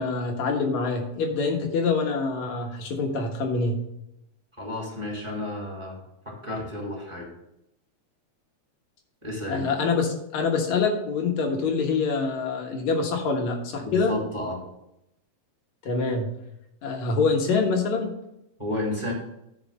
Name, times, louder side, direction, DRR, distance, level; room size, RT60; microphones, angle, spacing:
voice 1, 0.0-3.8 9.5-14.1 15.8-16.3 16.8-18.1, left 4 dB, 70° left, 3 dB, 2.7 m, -25 dB
voice 2, 4.6-6.0 6.3-7.3 9.2-9.7 13.8-14.6 18.6-19.1, left 1 dB, 10° right, -2 dB, 2.2 m, -32 dB
10.5 x 4.9 x 6.3 m, 0.83 s
omnidirectional pair, 3.4 m